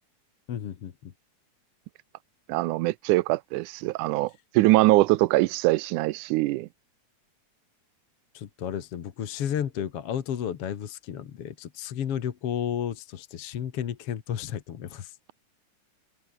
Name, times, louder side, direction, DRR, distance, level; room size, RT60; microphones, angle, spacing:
voice 1, 0.5-1.1 8.3-15.2, left 9 dB, 55° left, 2.3 m, -32 dB
voice 2, 2.5-6.7, right 19 dB, 85° right, 2.1 m, -23 dB
omnidirectional pair, 3.5 m